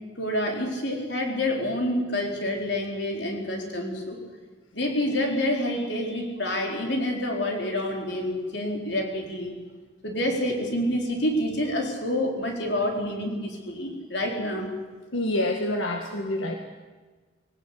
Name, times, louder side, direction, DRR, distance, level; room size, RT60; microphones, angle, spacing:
voice 1, 0.2-4.2 4.7-9.5 10.0-14.7, left 1 dB, 60° left, 1 dB, 4.5 m, -28 dB
voice 2, 15.1-16.6, left 1 dB, 90° left, 3 dB, 1.8 m, -27 dB
21.5 x 18.0 x 8.5 m, 1.3 s
head